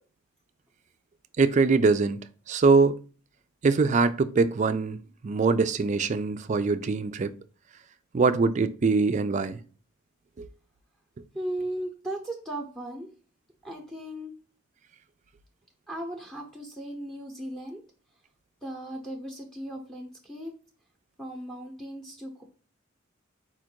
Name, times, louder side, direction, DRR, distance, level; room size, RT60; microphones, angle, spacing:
voice 1, 1.4-2.2 2.5-3.0 3.6-7.3 8.1-9.6 10.4-10.5, right 4 dB, 35° right, 0.3 m, -23 dB
voice 2, 11.3-13.1 13.6-14.3 15.9-17.8 18.6-20.5 21.2-22.4, right 1 dB, 5° left, 0.8 m, -36 dB
4.4 x 2.5 x 4.4 m
head